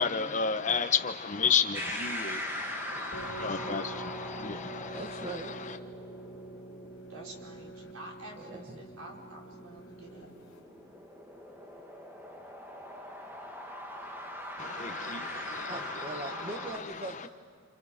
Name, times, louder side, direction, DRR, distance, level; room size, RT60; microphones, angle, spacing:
voice 1, 0.0-5.0 14.6-15.7, left 6 dB, 35° left, 1.0 m, -31 dB
sound 1, 1.7-16.8, equal, 10° right, 1.6 m, -42 dB
sound 2, 3.1-10.6, right 2 dB, 60° left, 3.9 m, -45 dB
voice 2, 3.5-3.9 4.9-5.8 8.4-8.8 15.7-17.3, right 1 dB, 30° right, 1.4 m, -42 dB
voice 3, 7.1-10.3, right 1 dB, 80° right, 4.8 m, -48 dB
29.0 x 29.0 x 5.2 m
head